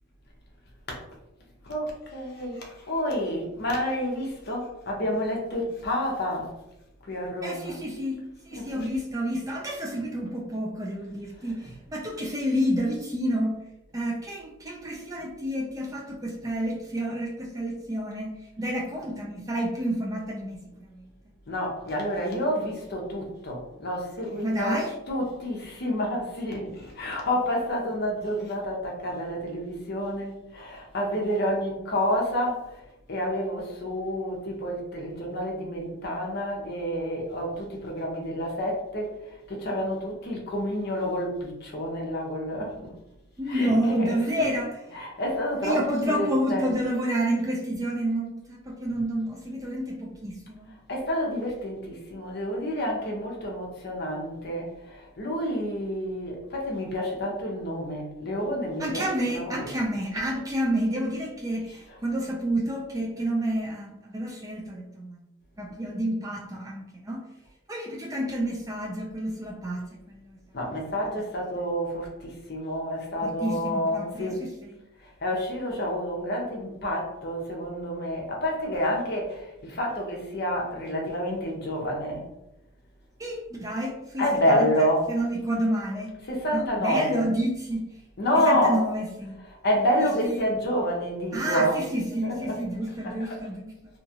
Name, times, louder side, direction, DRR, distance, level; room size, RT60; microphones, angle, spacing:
voice 1, 1.6-6.5 7.1-7.8 8.5-8.8 21.5-24.8 25.1-32.8 33.1-42.9 43.5-43.7 44.0-44.5 44.9-46.7 50.9-59.0 59.3-59.5 70.5-74.4 75.0-82.3 84.2-85.1 86.3-87.2 88.2-88.8 89.6-91.8 92.2-92.6 93.3-93.4, equal, 50° left, -1 dB, 0.6 m, -29 dB
voice 2, 7.4-13.5 13.9-18.3 18.6-21.1 24.4-24.9 43.4-45.0 45.6-50.7 58.8-65.2 65.6-67.2 67.7-70.4 73.2-74.8 83.2-86.1 86.5-87.9 88.3-89.4 90.0-90.5 91.3-93.7, right 1 dB, 15° right, -1 dB, 0.3 m, -29 dB
2.8 x 2.3 x 2.7 m, 0.92 s
head